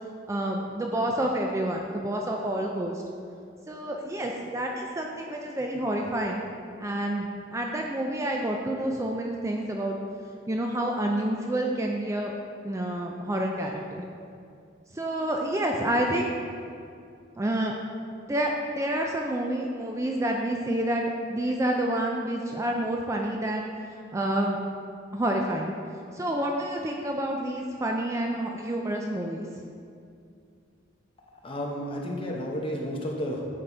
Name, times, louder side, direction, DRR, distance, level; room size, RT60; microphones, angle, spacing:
voice 1, 0.3-3.0 3.7-6.4 6.8-10.0 10.5-12.3 12.6-14.0 14.9-16.3 17.4-17.8 18.3-23.7 24.1-24.6 25.1-25.7 26.1-29.5, right 1 dB, 15° right, 1 dB, 0.4 m, -28 dB
voice 2, 31.4-33.4, equal, 30° left, -1 dB, 0.9 m, -32 dB
8.8 x 4.0 x 4.3 m, 2.4 s
head